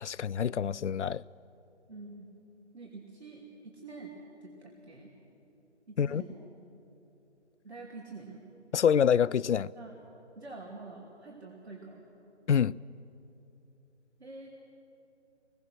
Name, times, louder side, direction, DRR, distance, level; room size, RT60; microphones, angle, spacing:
voice 1, 0.0-1.2 6.0-6.2 8.7-9.7 12.5-12.8, left 8 dB, 75° left, 0.5 m, -26 dB
voice 2, 1.9-2.3 2.7-5.1 5.9-6.4 7.6-8.4 9.7-10.0 10.3-12.0 14.2-14.5, right 3 dB, 60° right, 3.1 m, -46 dB
25.0 x 21.0 x 6.4 m
figure-of-eight pair, 155°, 36 cm